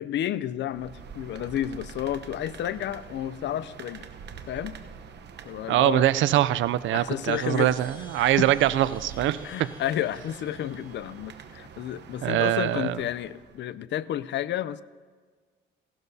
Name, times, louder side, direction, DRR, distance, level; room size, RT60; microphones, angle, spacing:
voice 1, 0.0-4.1 4.5-4.8 5.4-6.0 6.9-7.7 8.2-8.5 9.4-14.8, left 11 dB, 65° left, 17 dB, 0.5 m, -31 dB
sound 1, 0.7-13.7, right 6 dB, 60° right, 0.9 m, -45 dB
voice 2, 5.7-9.5 12.2-13.0, right 13 dB, 75° right, 15 dB, 0.4 m, -23 dB
Chime, 6.9-11.6, left 2 dB, 25° left, 3.9 m, -54 dB
17.0 x 12.0 x 2.7 m, 1.5 s
cardioid pair, 90°, 20 cm